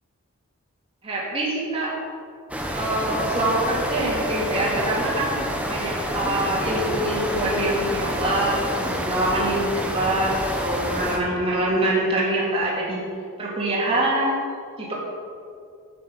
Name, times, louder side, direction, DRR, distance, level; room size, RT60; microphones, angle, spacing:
voice 1, 1.0-2.0 2.7-5.3 5.7-10.3 10.6-13.0 13.4-14.4 14.8-14.9, right 1 dB, 25° right, -5 dB, 2.1 m, -24 dB
sound 1, 2.5-11.2, equal, 5° right, 0.8 m, -28 dB
7.9 x 7.5 x 6.0 m, 2.3 s
head